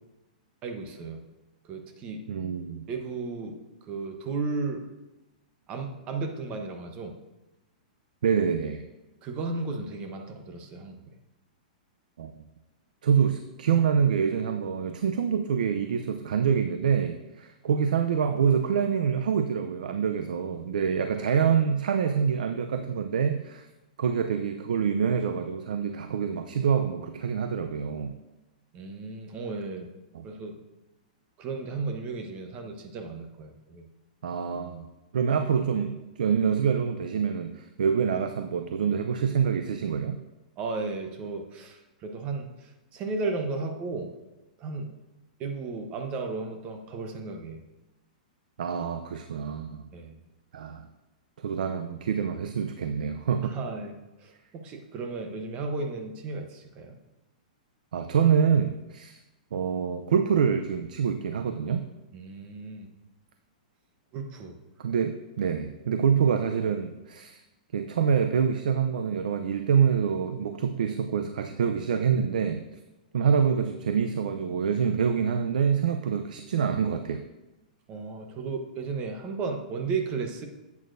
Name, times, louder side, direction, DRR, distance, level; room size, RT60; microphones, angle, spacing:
voice 1, 0.6-1.2 1.6-2.2 2.9-4.8 5.7-7.1 9.2-11.1 28.7-29.9 30.2-30.6 31.4-33.9 40.6-44.1 44.6-45.0 45.4-47.6 49.9-50.2 53.4-57.0 62.1-62.9 64.1-64.5 77.9-80.5, right 4 dB, 25° right, 4 dB, 0.9 m, -34 dB
voice 2, 2.3-2.9 8.2-8.8 12.2-12.3 13.0-23.7 24.0-28.1 30.1-30.2 34.2-34.9 35.1-40.2 48.6-49.8 50.5-50.9 51.4-53.5 57.9-59.2 59.5-61.8 64.8-67.4 67.7-72.6 73.1-77.2, right 7 dB, 80° right, 7 dB, 0.6 m, -26 dB
11.0 x 8.4 x 2.6 m, 1.0 s
hypercardioid pair, 160°, 4 cm